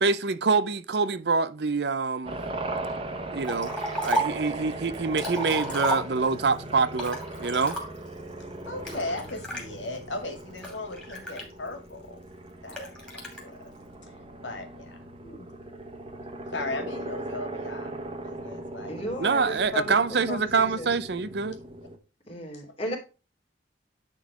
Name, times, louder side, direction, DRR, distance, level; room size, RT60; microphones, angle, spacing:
voice 1, 0.0-2.4 3.3-7.8 19.2-21.6, right 4 dB, 60° right, 0.6 m, -26 dB
sound 1, 2.2-22.0, right 2 dB, 30° right, 1.2 m, -38 dB
Liquid, 3.4-4.5 4.9-6.5 6.9-8.2 8.9-9.6 10.2-11.9 12.7-13.4, right 1 dB, 5° left, 2.8 m, -33 dB
voice 2, 8.7-12.2 12.6-13.7 14.0-14.1 14.4-15.5 16.5-17.9 18.2-19.1 22.5-22.6, left 2 dB, 85° left, 2.2 m, -37 dB
voice 3, 18.9-20.9 22.3-23.0, left 1 dB, 30° left, 3.0 m, -34 dB
10.5 x 3.9 x 4.8 m
head